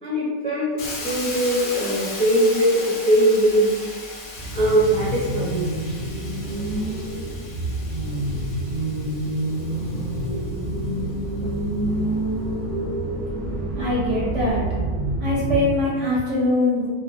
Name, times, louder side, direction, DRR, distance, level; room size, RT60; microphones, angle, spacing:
voice 1, 0.0-3.7 4.5-5.6, right 1 dB, 5° left, -9 dB, 0.5 m, -20 dB
Hiss, 0.8-10.7, left 2 dB, 70° left, 0.5 m, -37 dB
sound 1, 4.4-15.6, right 1 dB, 35° right, 0.7 m, -27 dB
voice 2, 13.7-14.7 15.2-16.9, left 1 dB, 65° right, -6 dB, 0.8 m, -22 dB
2.4 x 2.2 x 2.6 m, 1.5 s
omnidirectional pair, 1.6 m